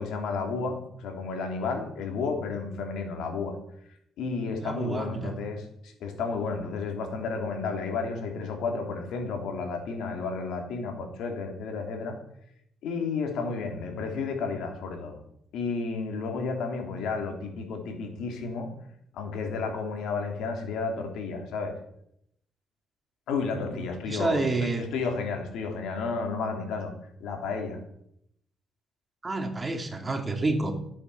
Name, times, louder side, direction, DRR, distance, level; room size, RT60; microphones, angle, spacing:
voice 1, 0.0-3.6 4.2-12.2 12.8-15.2 15.5-18.7 19.1-21.8 23.3-26.9 27.2-27.8, left 4 dB, 80° left, 4 dB, 3.3 m, -32 dB
voice 2, 4.6-5.4 23.7-24.8 29.2-30.7, right 3 dB, 25° right, 5 dB, 2.6 m, -29 dB
15.0 x 8.5 x 7.1 m, 0.74 s
cardioid pair, 90°, 0 cm